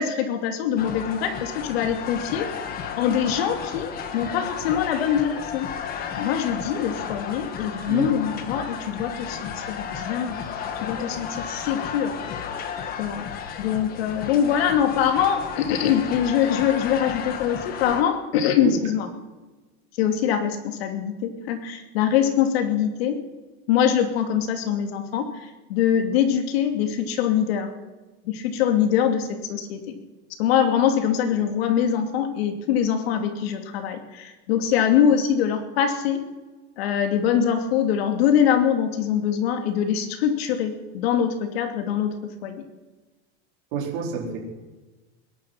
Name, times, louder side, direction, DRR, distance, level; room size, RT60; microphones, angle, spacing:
voice 1, 0.0-2.5 3.0-5.7 6.2-10.4 10.8-12.1 13.0-13.3 13.6-19.1 20.0-23.2 23.7-25.3 25.7-27.7 28.2-29.9 30.4-36.3 36.8-42.6, left 9 dB, 75° left, 6 dB, 2.8 m, -23 dB
sound 1, 0.8-18.0, left 7 dB, 30° left, 1.5 m, -33 dB
voice 2, 43.7-44.4, right 7 dB, 55° right, 0 dB, 4.2 m, -28 dB
21.0 x 11.5 x 5.9 m, 1.2 s
supercardioid pair, 165°, 31 cm